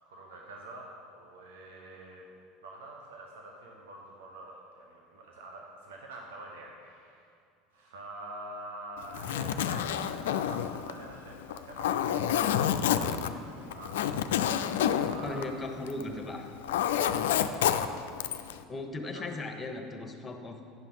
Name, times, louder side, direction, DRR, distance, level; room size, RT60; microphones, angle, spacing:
voice 1, 0.0-2.3 2.6-7.3 7.7-14.4 14.9-15.8 17.3-18.3 19.1-19.3, right 2 dB, 75° right, 0 dB, 1.0 m, -47 dB
Zipper (clothing), 9.0-16.1 16.4-18.6, left 9 dB, 75° left, 0.3 m, -29 dB
voice 2, 15.2-16.5 18.7-20.6, left 2 dB, 25° left, 4 dB, 1.1 m, -37 dB
9.5 x 5.8 x 5.5 m, 2.4 s
hypercardioid pair, 80°, 0 cm